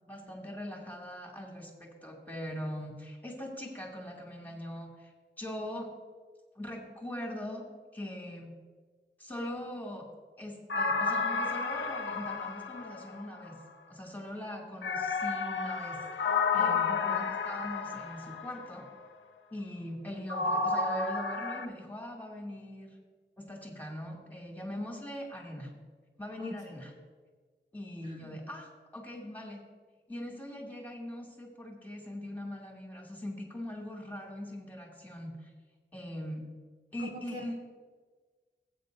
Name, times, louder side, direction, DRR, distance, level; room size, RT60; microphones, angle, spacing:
voice 1, 0.1-5.1 5.4-5.9 6.5-7.6 7.9-8.5 9.2-10.0 10.4-13.6 13.9-18.9 19.5-23.0 23.4-25.7 26.2-26.9 27.7-29.6 30.1-35.5 35.9-36.5 36.9-37.5, left 1 dB, 10° left, -1 dB, 2.3 m, -41 dB
sound 1, 10.7-13.5 14.8-18.6 20.3-21.6, left 4 dB, 80° left, 0.7 m, -31 dB
voice 2, 16.5-17.2 26.4-26.5 28.0-28.4 37.0-37.5, left 1 dB, 40° right, 0 dB, 1.6 m, -42 dB
17.5 x 8.6 x 2.6 m, 1.5 s
wide cardioid pair, 85°, 19 cm